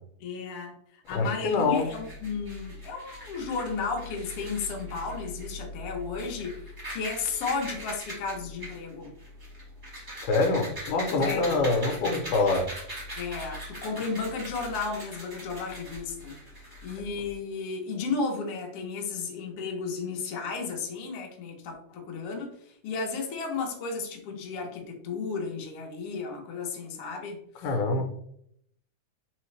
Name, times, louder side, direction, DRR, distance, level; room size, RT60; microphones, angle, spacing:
voice 1, 0.2-6.6 6.9-9.1 11.2-11.6 13.1-16.4 16.8-27.7, left 4 dB, 65° left, 1 dB, 1.6 m, -33 dB
sound 1, 1.0-17.3, equal, 20° right, 0.6 m, -41 dB
voice 2, 1.1-1.9 10.2-12.7 27.6-28.0, left 3 dB, 85° left, 3 dB, 2.3 m, -25 dB
4.1 x 3.7 x 3.2 m, 0.69 s
omnidirectional pair, 3.5 m